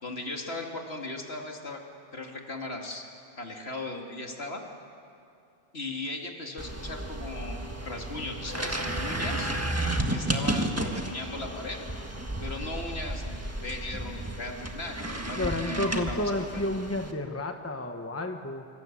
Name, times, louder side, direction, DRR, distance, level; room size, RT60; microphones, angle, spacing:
voice 1, 0.0-1.8 2.1-3.0 3.4-4.6 5.7-9.5 10.1-11.9 12.4-16.2, left 2 dB, 60° left, 1 dB, 2.8 m, -37 dB
sound 1, 6.6-17.1, right 1 dB, 15° right, 1.5 m, -33 dB
voice 2, 15.3-18.7, left 1 dB, 15° left, 5 dB, 1.2 m, -31 dB
26.0 x 25.0 x 7.6 m, 2.6 s
omnidirectional pair, 1.2 m